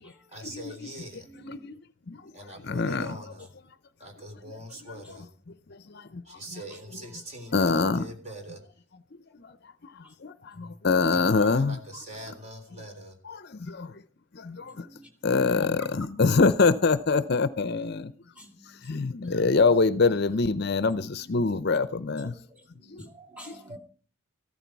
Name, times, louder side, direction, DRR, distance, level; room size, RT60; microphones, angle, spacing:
voice 1, 0.3-1.3 2.3-3.5 4.0-5.3 6.2-8.6 11.1-13.2, right 1 dB, 30° right, 4 dB, 3.5 m, -42 dB
voice 2, 1.3-1.7 6.7-6.8 7.4-7.5 10.0-10.1 10.5-10.8 14.5-15.9 18.3-19.4 20.2-20.3 21.6-23.8, equal, 5° right, 4 dB, 2.5 m, -49 dB
voice 3, 2.7-3.1 5.7-6.4 7.5-8.0 9.3-9.5 10.2-11.8 13.3-13.9 14.3-14.9 15.2-18.1 18.8-22.3 22.9-23.0, left 4 dB, 50° left, 14 dB, 0.6 m, -24 dB
15.0 x 13.5 x 4.6 m, 0.40 s
head